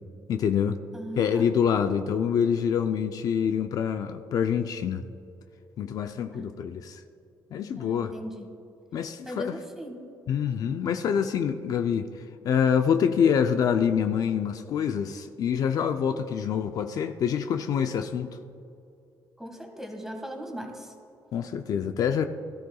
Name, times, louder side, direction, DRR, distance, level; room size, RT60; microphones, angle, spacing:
voice 1, 0.3-0.8 1.2-5.0 5.8-7.0 7.5-8.1 8.9-9.5 10.3-12.1 12.4-18.3 21.3-22.2, left 7 dB, 60° left, 7 dB, 0.5 m, -26 dB
voice 2, 0.9-1.5 6.3-6.5 7.8-8.5 9.3-10.1 16.1-16.2 19.4-20.9, equal, 5° right, 2 dB, 1.9 m, -38 dB
17.5 x 13.0 x 2.3 m, 2.7 s
cardioid pair, 110°, 7 cm